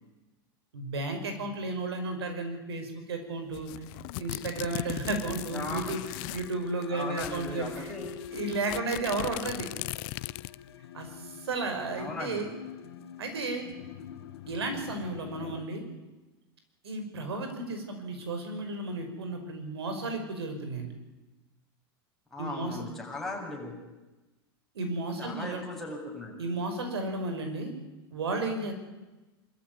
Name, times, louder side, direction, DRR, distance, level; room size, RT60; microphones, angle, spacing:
voice 1, 0.7-3.7 4.2-6.0 6.3-7.9 8.3-9.7 10.9-12.5 13.2-13.6 14.5-15.8 16.8-20.9 22.4-22.8 24.7-25.6 26.4-27.7 28.1-28.7, right 3 dB, 90° right, 6 dB, 5.4 m, -33 dB
sound 1, 3.5-6.5 6.8-6.9 7.1-10.7, left 21 dB, 55° left, 0.6 m, -39 dB
voice 2, 5.5-5.9 6.3-6.4 6.9-8.1 11.9-12.5 22.3-23.8 25.2-26.4, left 2 dB, ahead, -2 dB, 7.9 m, -38 dB
sound 2, 6.1-15.6, left 10 dB, 85° left, 1.7 m, -45 dB
24.0 x 14.0 x 9.6 m, 1.1 s
hypercardioid pair, 110°, 13 cm